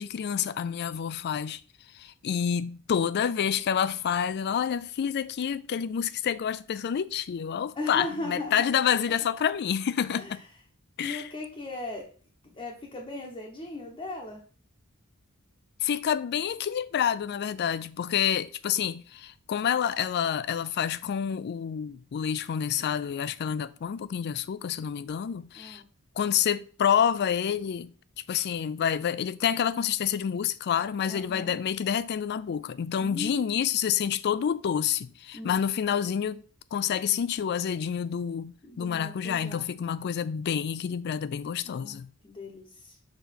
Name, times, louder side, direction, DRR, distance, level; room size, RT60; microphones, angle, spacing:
voice 1, 0.0-1.6 1.9-10.4 11.0-11.2 15.8-25.8 26.2-27.9 28.3-36.4 36.7-42.1, left 8 dB, 50° left, 0.3 m, -28 dB
voice 2, 7.8-8.6 10.2-10.3 11.0-12.1 12.5-14.4 25.6-25.8 31.1-31.5 33.0-33.6 35.3-35.6 38.6-39.7 41.6-42.0 42.2-43.0, left 2 dB, 25° left, 0.9 m, -37 dB
6.5 x 3.0 x 5.1 m
head